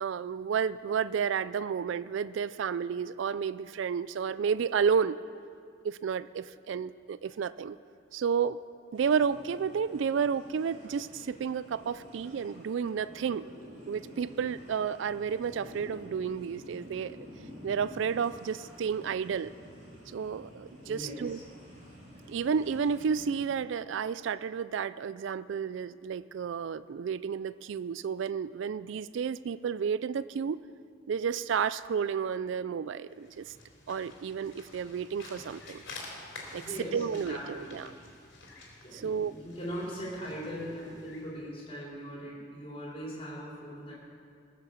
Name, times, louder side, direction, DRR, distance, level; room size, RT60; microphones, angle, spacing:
voice 1, 0.0-5.2 5.8-7.8 8.1-8.6 8.9-13.5 13.9-17.2 17.6-19.5 20.1-21.4 22.3-30.6 31.1-33.5 33.9-35.8 36.5-36.6 36.9-37.9 38.9-39.3, right 6 dB, 70° right, 16 dB, 0.3 m, -31 dB
sound 1, 8.9-23.4, equal, 35° right, 3.6 m, -50 dB
voice 2, 20.9-21.4 36.5-37.8 38.8-43.9, equal, 30° left, -6 dB, 4.2 m, -40 dB
sound 2, 33.1-41.3, left 3 dB, 80° left, 3.3 m, -49 dB
19.5 x 6.7 x 7.2 m, 2.3 s
head